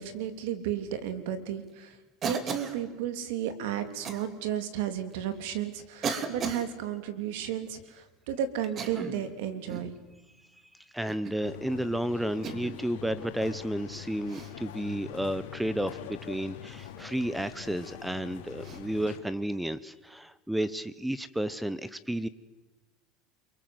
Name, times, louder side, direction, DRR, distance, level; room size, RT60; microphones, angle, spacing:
voice 1, 0.0-2.0 2.2-10.0, right 10 dB, 75° right, 10 dB, 3.2 m, -33 dB
Cough, 2.2-2.8 4.0-4.2 5.1-5.2 6.0-6.7 8.6-9.3 9.7-10.0 11.1-11.4 12.4-12.8 14.3-14.5 16.8-16.9 18.6-18.8, right 5 dB, 35° right, 2.8 m, -35 dB
voice 2, 10.7-22.3, right 1 dB, 5° right, 17 dB, 0.9 m, -32 dB
sound 1, 11.4-19.2, left 10 dB, 85° left, 3.0 m, -44 dB
29.5 x 23.0 x 7.9 m, 1.2 s
supercardioid pair, 125°, 0 cm